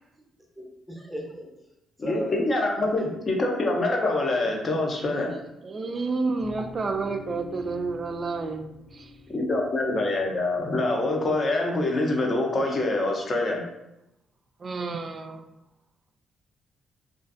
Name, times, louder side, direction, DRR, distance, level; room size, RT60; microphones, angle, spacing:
voice 1, 0.6-1.5 2.0-2.4 2.8-3.2 5.1-5.4 6.0-6.1, equal, ahead, -1 dB, 0.7 m, -37 dB
voice 2, 2.0-5.3 9.3-13.6, left 2 dB, 40° left, 1 dB, 0.5 m, -25 dB
voice 3, 5.6-9.1 14.6-15.5, right 3 dB, 40° right, 6 dB, 0.3 m, -30 dB
sound 1, 6.4-10.5, left 3 dB, 65° left, 1.0 m, -46 dB
2.4 x 2.4 x 2.4 m, 0.88 s
cardioid pair, 90°, 0 cm